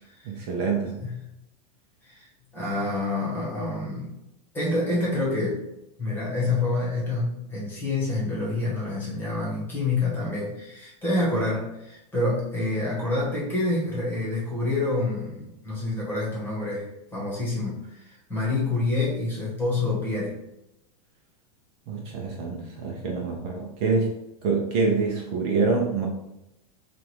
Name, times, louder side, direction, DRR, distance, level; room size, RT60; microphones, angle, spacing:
voice 1, 0.2-1.0 21.9-24.1 24.4-26.1, right 4 dB, 45° right, 0 dB, 0.8 m, -26 dB
voice 2, 2.5-4.1 4.5-5.6 6.0-20.3, left 2 dB, 10° left, -5 dB, 1.4 m, -27 dB
3.7 x 2.6 x 4.6 m, 0.87 s
supercardioid pair, 165°, 19 cm